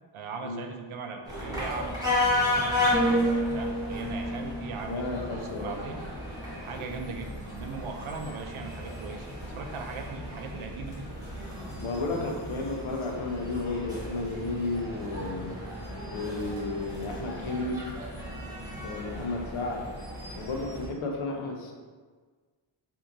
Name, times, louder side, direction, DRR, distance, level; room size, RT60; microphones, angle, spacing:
voice 1, 0.1-3.2 3.5-6.0 6.6-11.1, right 4 dB, 80° right, 4 dB, 0.6 m, -39 dB
sound 1, 1.2-20.9, left 2 dB, 10° right, 0.9 m, -34 dB
sound 2, 2.9-6.9 7.3-7.6, right 1 dB, 10° left, 0.6 m, -32 dB
voice 2, 4.9-5.8 11.8-15.6 16.1-17.8 18.8-19.9 20.4-21.7, left 2 dB, 80° left, 1 dB, 0.7 m, -33 dB
sound 3, 10.8-14.4 14.7-16.2, left 1 dB, 25° right, 1.2 m, -52 dB
4.5 x 2.7 x 2.5 m, 1.5 s
wide cardioid pair, 130°, 48 cm